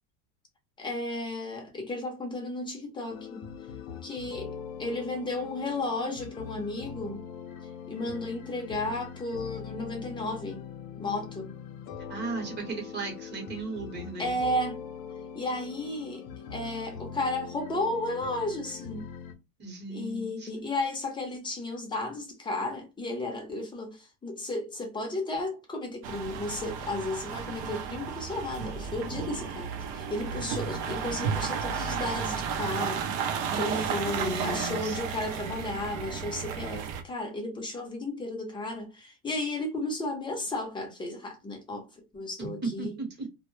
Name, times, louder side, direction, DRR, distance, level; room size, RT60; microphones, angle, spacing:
voice 1, 0.8-3.5 4.0-7.2 7.9-10.6 11.0-11.6 14.2-14.8 15.3-16.2 16.5-19.1 19.9-33.1 33.6-41.9 42.1-42.9, left 2 dB, 10° left, 0.6 m, -33 dB
sound 1, 3.1-19.3, left 7 dB, 70° left, 0.7 m, -42 dB
voice 2, 12.1-14.4 19.6-20.5 33.4-33.9 34.2-35.0 42.6-43.1, right 3 dB, 25° right, 1.0 m, -35 dB
sound 2, 26.0-37.0, right 6 dB, 45° right, 0.6 m, -33 dB
2.2 x 2.0 x 3.0 m
supercardioid pair, 130°, 44 cm